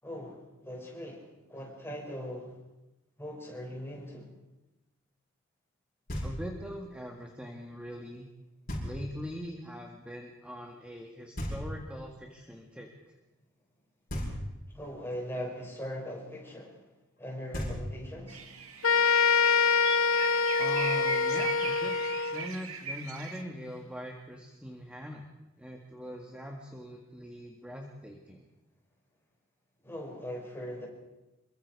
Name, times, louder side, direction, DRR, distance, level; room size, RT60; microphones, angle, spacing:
voice 1, 0.0-2.5 3.2-4.3 14.7-16.8 17.2-18.4 29.8-30.9, equal, 10° left, -3 dB, 6.8 m, -40 dB
Knock, 6.1-6.7 8.7-9.3 11.3-12.2 14.1-14.9 17.2-17.3 17.5-18.3, equal, 45° left, 7.8 m, -37 dB
voice 2, 6.2-8.3 8.8-13.1 20.6-25.3 25.6-28.5, equal, 5° right, 1 dB, 1.9 m, -42 dB
sound 1, 18.3-23.4, right 5 dB, 90° right, 2.3 m, -39 dB
sound 2, 18.8-22.5, left 5 dB, 75° left, 0.8 m, -25 dB
27.5 x 23.0 x 4.9 m, 1.0 s
head